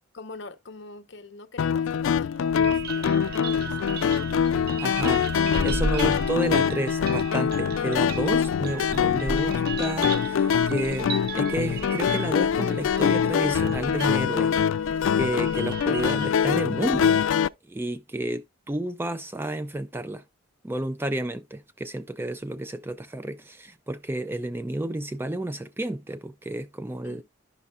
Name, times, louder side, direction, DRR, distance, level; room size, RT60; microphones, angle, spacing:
voice 1, 0.1-4.5 27.0-27.2, left 3 dB, 60° left, 0.9 m, -45 dB
sound 1, 1.6-17.5, left 7 dB, 85° left, 0.3 m, -24 dB
sound 2, 2.3-16.3, right 3 dB, 50° right, 0.7 m, -36 dB
voice 2, 4.8-14.5 14.8-17.2 17.7-20.2 20.6-27.2, right 1 dB, 10° right, 0.3 m, -31 dB
11.5 x 5.4 x 2.3 m
head